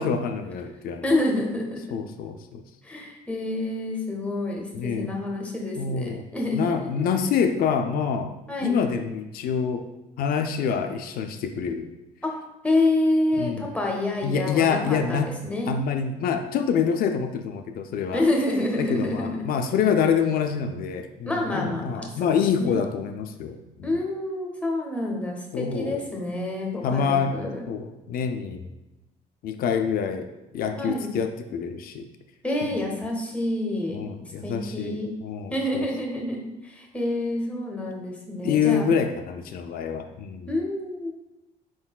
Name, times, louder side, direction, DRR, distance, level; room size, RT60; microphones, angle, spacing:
voice 1, 0.0-1.1 1.9-2.6 4.7-5.1 5.8-6.2 6.5-8.3 8.6-9.9 10.2-11.9 13.4-13.7 14.2-15.3 15.7-18.2 18.8-23.9 25.5-26.0 26.8-27.3 27.7-28.6 29.4-32.1 32.7-32.8 33.9-35.9 38.4-40.5, left 6 dB, 60° left, 6 dB, 0.4 m, -26 dB
voice 2, 1.0-2.0 2.8-7.2 8.5-8.8 12.2-12.3 12.6-15.8 18.1-19.4 21.3-22.1 22.6-22.8 23.8-27.6 30.8-31.1 32.4-34.0 34.4-35.1 35.5-38.9 40.5-41.1, left 1 dB, 10° left, -1 dB, 0.8 m, -28 dB
4.5 x 3.7 x 2.3 m, 0.98 s
cardioid pair, 110°, 17 cm